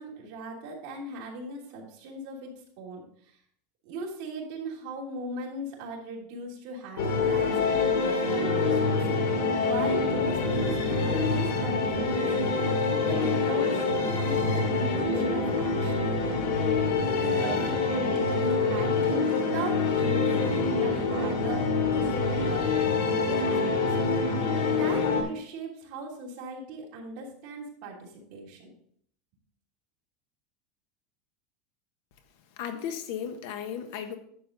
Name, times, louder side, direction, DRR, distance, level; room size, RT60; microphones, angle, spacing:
voice 1, 0.0-2.5 2.8-3.4 3.8-8.4 8.7-9.0 9.6-12.3 13.0-16.1 17.2-24.0 24.7-28.7, right 2 dB, 45° right, -3 dB, 3.1 m, -39 dB
sound 1, 7.0-25.2, left 4 dB, 80° left, 2.3 m, -26 dB
voice 2, 32.6-34.2, left 8 dB, 60° left, 8 dB, 1.3 m, -35 dB
11.0 x 7.1 x 4.0 m, 0.65 s
supercardioid pair, 175°, 0 cm